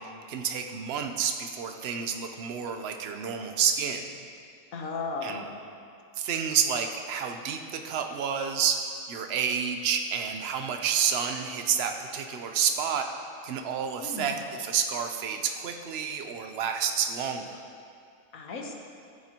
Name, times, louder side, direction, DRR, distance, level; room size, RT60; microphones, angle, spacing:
voice 1, 0.0-4.0 5.2-5.4 6.2-17.6, right 7 dB, 55° right, 5 dB, 0.9 m, -29 dB
voice 2, 4.7-5.5 14.0-14.4 18.3-18.7, left 4 dB, 80° left, 1 dB, 1.5 m, -35 dB
14.5 x 9.6 x 2.9 m, 2.3 s
omnidirectional pair, 1.4 m